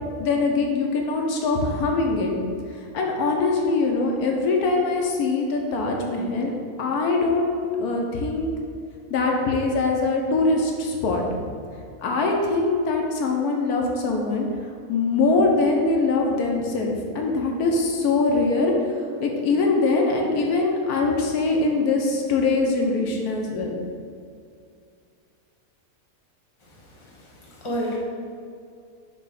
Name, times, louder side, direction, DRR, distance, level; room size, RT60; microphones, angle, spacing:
voice 1, 0.2-2.3 2.9-6.5 6.8-8.5 9.1-11.2 12.0-14.5 14.9-18.7 19.2-23.8, left 3 dB, 90° left, 1 dB, 1.4 m, -22 dB
voice 2, 27.0-28.0, equal, 20° left, -5 dB, 1.1 m, -30 dB
7.2 x 3.1 x 5.7 m, 2.3 s
omnidirectional pair, 1.5 m